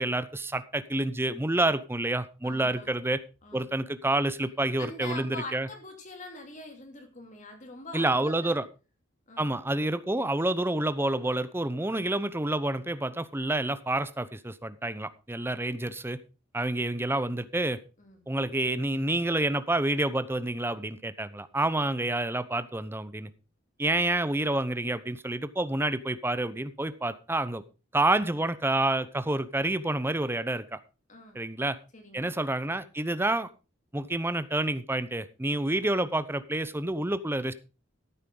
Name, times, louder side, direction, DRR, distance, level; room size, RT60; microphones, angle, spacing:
voice 1, 0.0-3.2 3.5-5.7 7.9-8.6 9.4-16.2 16.5-17.8 18.3-23.3 23.8-27.6 27.9-30.8 31.3-31.8 32.1-33.5 33.9-37.5, right 2 dB, 10° right, 13 dB, 0.8 m, -28 dB
voice 2, 2.4-2.9 3.4-3.6 4.8-8.6 9.3-9.5 11.8-12.2 18.0-18.2 31.1-31.4 31.9-32.3, left 2 dB, 40° left, 4 dB, 3.0 m, -43 dB
14.5 x 8.9 x 3.9 m, 0.32 s
head